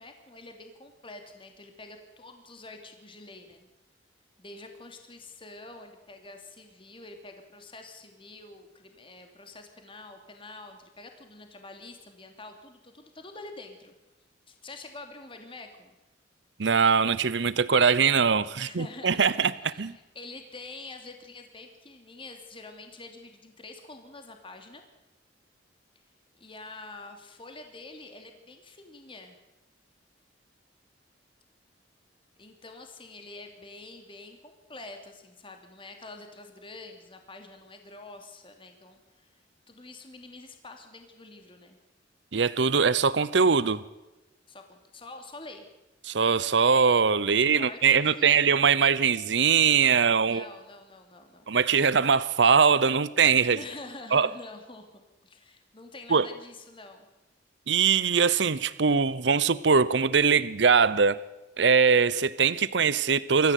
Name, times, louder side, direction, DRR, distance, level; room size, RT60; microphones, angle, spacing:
voice 1, 0.0-3.7 4.4-13.9 14.5-16.0 18.5-24.8 26.3-29.4 32.4-41.8 44.5-45.7 47.4-48.5 50.2-51.5 53.5-57.1, left 2 dB, 30° left, 2.8 m, -46 dB
voice 2, 16.6-19.9 42.3-43.8 46.1-50.4 51.5-53.6 54.1-54.3 56.1-56.3 57.7-61.2 61.6-63.5, right 6 dB, 65° right, 0.8 m, -22 dB
25.0 x 14.0 x 8.3 m
head